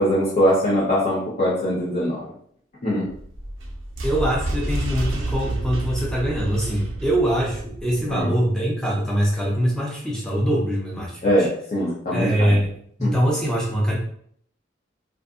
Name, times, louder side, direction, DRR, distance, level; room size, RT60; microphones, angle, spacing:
voice 1, 0.0-2.2 2.8-3.1 8.1-8.3 11.2-12.6 13.0-13.1, equal, 40° left, -9 dB, 0.7 m, -22 dB
sound 1, 3.1-8.2, right 2 dB, 80° right, 0.5 m, -29 dB
voice 2, 4.0-11.5 12.1-12.7 13.0-14.0, equal, 5° left, -4 dB, 0.6 m, -23 dB
2.5 x 2.5 x 2.4 m, 0.64 s
head